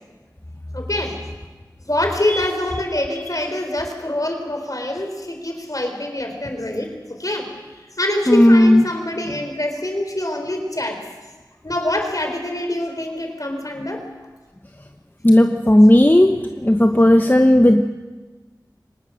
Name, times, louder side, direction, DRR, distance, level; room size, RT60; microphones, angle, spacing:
voice 1, 0.7-1.2 1.9-7.5 8.0-11.0 11.6-14.0 17.1-17.2, left 1 dB, 50° left, 4 dB, 4.3 m, -25 dB
voice 2, 8.3-8.8 15.2-17.8, left 1 dB, 25° left, 5 dB, 1.1 m, -13 dB
24.0 x 19.0 x 6.5 m, 1.3 s
wide cardioid pair, 40°, 7 cm